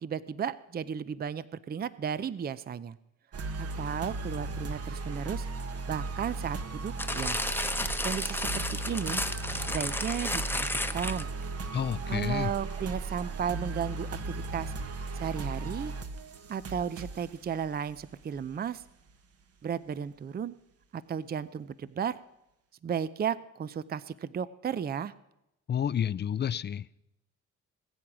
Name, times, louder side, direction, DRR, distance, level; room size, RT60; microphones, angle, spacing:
voice 1, 0.0-3.0 3.6-5.5 5.9-7.4 8.0-9.2 9.6-10.7 10.9-11.3 12.1-14.7 15.1-15.9 16.5-18.8 19.6-20.5 20.9-22.2 22.8-25.1, right 7 dB, 30° right, 17 dB, 0.5 m, -34 dB
sound 1, 3.3-19.1, right 3 dB, 50° right, 1.3 m, -37 dB
sound 2, 7.0-11.4 12.2-12.3, left 1 dB, 5° left, 1.0 m, -32 dB
voice 2, 11.7-12.5 25.7-26.9, left 9 dB, 35° left, 19 dB, 0.5 m, -30 dB
20.0 x 8.6 x 6.1 m, 0.88 s
cardioid pair, 90°, 30 cm